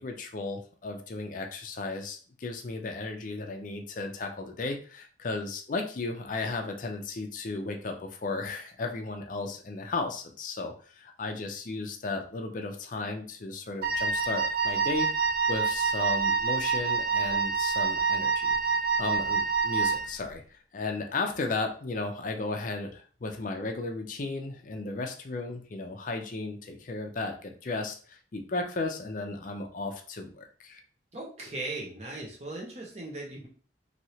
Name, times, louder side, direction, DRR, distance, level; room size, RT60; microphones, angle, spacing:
voice 1, 0.0-18.6 19.0-30.8, left 3 dB, 45° left, 4 dB, 0.5 m, -35 dB
Wind instrument woodwind instrument, 13.8-20.2, right 5 dB, 50° right, 0.3 m, -27 dB
voice 2, 31.1-33.5, right 2 dB, 35° right, -2 dB, 0.9 m, -38 dB
3.1 x 2.7 x 2.8 m, 0.42 s
head